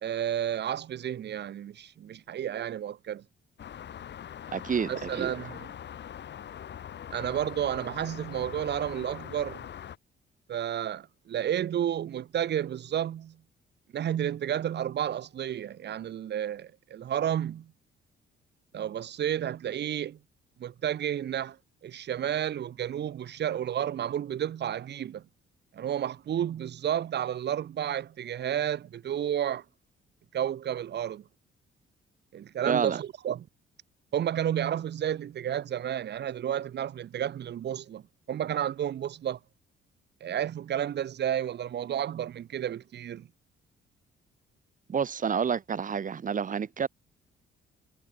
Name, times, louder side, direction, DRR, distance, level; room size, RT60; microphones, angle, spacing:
voice 1, 0.0-3.2 4.9-5.7 7.1-9.6 10.5-13.4 13.9-17.7 18.7-20.2 20.6-21.6 21.8-25.2 25.7-29.6 30.3-31.2 32.3-33.5 34.1-38.0 38.3-39.4 40.2-43.3, right 10 dB, 60° right, 1.4 m, -31 dB
sound 1, 3.6-10.0, left 9 dB, 60° left, 4.6 m, -42 dB
voice 2, 4.5-5.3 32.6-33.0 44.9-46.9, right 7 dB, 40° right, 1.6 m, -29 dB
cardioid pair, 90°, 20 cm